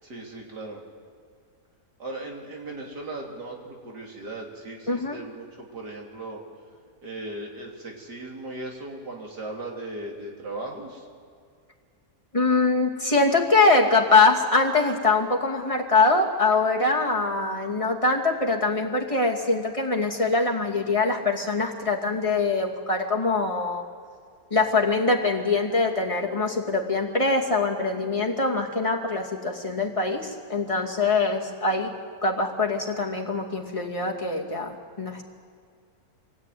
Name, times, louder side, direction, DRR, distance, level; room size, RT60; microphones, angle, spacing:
voice 1, 0.0-0.8 2.0-6.4 7.0-11.1, right 2 dB, 85° right, -1 dB, 3.7 m, -37 dB
voice 2, 4.9-5.2 12.3-23.8 24.5-31.9 32.2-35.2, left 3 dB, 20° left, -1 dB, 2.5 m, -23 dB
25.0 x 17.5 x 9.4 m, 2.1 s
omnidirectional pair, 1.7 m